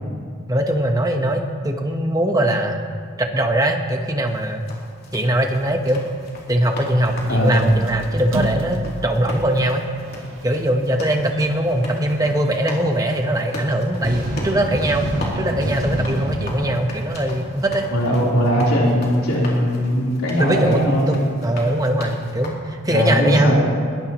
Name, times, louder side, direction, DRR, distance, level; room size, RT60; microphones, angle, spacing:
voice 1, 0.5-2.9 3.2-4.6 5.1-6.0 6.5-9.8 10.4-15.1 15.3-17.9 20.4-23.5, right 1 dB, 15° right, 3 dB, 1.1 m, -21 dB
sound 1, 4.3-22.5, left 1 dB, 45° left, 3.1 m, -38 dB
sound 2, 7.1-12.5, right 2 dB, 65° right, 0.9 m, -33 dB
voice 2, 7.3-7.6 17.9-21.2 22.9-23.6, equal, 75° left, -6 dB, 3.8 m, -19 dB
sound 3, 14.0-18.0, equal, 45° right, 4.2 m, -26 dB
21.5 x 20.0 x 3.1 m, 2.2 s
head